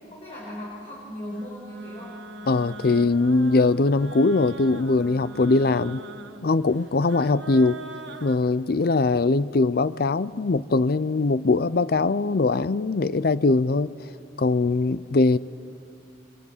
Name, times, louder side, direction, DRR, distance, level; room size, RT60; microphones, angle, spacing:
voice 1, 0.1-2.2, left 1 dB, 35° left, -5 dB, 4.6 m, -37 dB
sound 1, 1.3-8.4, right 3 dB, 65° right, 1.5 m, -42 dB
voice 2, 2.5-6.0 6.4-7.8 8.2-13.9 14.4-15.4, left 3 dB, 50° left, 17 dB, 0.5 m, -21 dB
24.0 x 24.0 x 7.3 m, 2.4 s
head